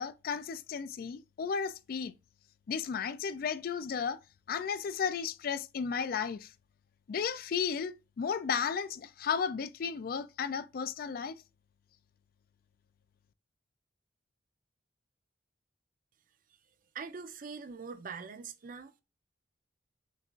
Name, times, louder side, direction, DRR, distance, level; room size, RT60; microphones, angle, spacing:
voice 1, 0.0-2.1 2.7-4.2 4.5-6.5 7.1-11.4, left 6 dB, 50° left, 0.3 m, -34 dB
voice 2, 16.9-18.9, right 5 dB, 45° right, 0.5 m, -43 dB
6.5 x 2.4 x 2.3 m
head